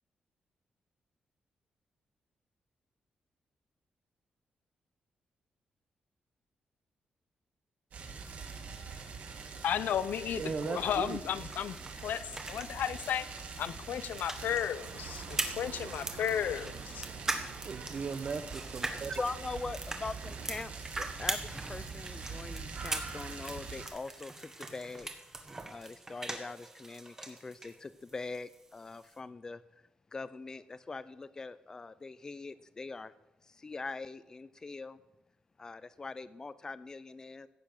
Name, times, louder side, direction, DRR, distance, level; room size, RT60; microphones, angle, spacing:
sound 1, 7.9-23.9, right 5 dB, 55° right, 2.8 m, -44 dB
voice 1, 9.6-11.8 12.0-13.3 13.6-17.1, left 9 dB, 80° left, 0.7 m, -34 dB
voice 2, 10.4-11.2 17.6-19.2, right 5 dB, 40° right, 0.9 m, -37 dB
sound 2, 11.5-27.8 28.1-29.2, right 2 dB, 15° right, 1.4 m, -42 dB
sound 3, 14.4-20.7, right 7 dB, 80° right, 1.3 m, -50 dB
voice 3, 19.1-20.7 21.0-25.1 25.7-29.6 30.1-33.1 33.5-35.0 35.6-37.5, left 3 dB, 20° left, 0.6 m, -42 dB
15.5 x 8.4 x 6.6 m
wide cardioid pair, 165°, 3 cm